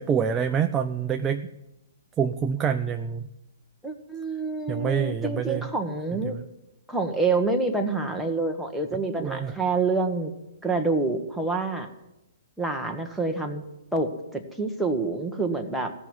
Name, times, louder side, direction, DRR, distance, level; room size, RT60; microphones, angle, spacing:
voice 1, 0.0-1.5 2.2-3.3 4.7-5.7 6.2-6.4 8.9-9.6, right 7 dB, 20° right, 6 dB, 0.5 m, -27 dB
voice 2, 3.8-6.4 6.9-10.3 10.6-11.9 12.6-13.6 13.9-15.9, right 3 dB, ahead, 2 dB, 1.3 m, -27 dB
15.5 x 6.0 x 9.9 m, 0.93 s
hypercardioid pair, 130°, 0 cm